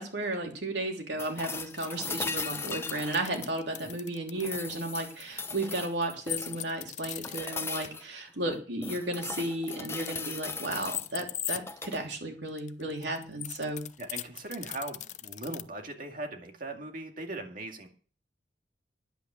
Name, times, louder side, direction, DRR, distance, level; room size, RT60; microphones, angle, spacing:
voice 1, 0.0-13.8, right 1 dB, 80° right, 2 dB, 3.0 m, -34 dB
sound 1, 1.2-4.0 4.4-6.7 7.2-8.0 8.5-11.1 11.6-12.0 14.1-14.2, left 4 dB, 15° left, 0.8 m, -38 dB
sound 2, 1.6-4.5 6.3-7.9 9.6-11.6 12.5-15.6, left 13 dB, 45° left, 0.5 m, -38 dB
voice 2, 14.0-17.9, right 2 dB, 50° right, 4 dB, 2.3 m, -39 dB
10.5 x 8.4 x 8.1 m, 0.40 s
head